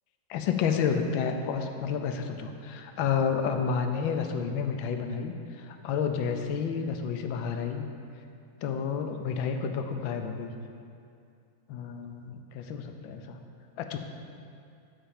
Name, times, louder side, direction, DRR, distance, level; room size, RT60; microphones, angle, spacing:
voice 1, 0.3-7.9 8.6-10.5 11.7-13.4 13.8-14.0, left 6 dB, 80° left, 6 dB, 1.4 m, -30 dB
8.9 x 4.4 x 7.2 m, 2.5 s
omnidirectional pair, 2.2 m